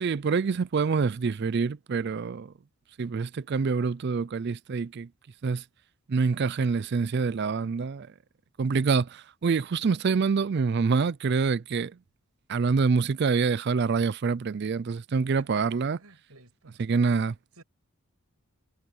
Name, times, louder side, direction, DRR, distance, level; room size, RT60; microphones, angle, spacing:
voice 1, 0.0-2.5 3.0-5.1 5.4-5.6 6.1-8.1 8.6-11.9 12.5-16.0 16.8-17.3, right 5 dB, 50° right, 0.4 m, -26 dB
voice 2, 15.4-16.8 17.6-17.7, right 3 dB, 80° right, 6.7 m, -50 dB
head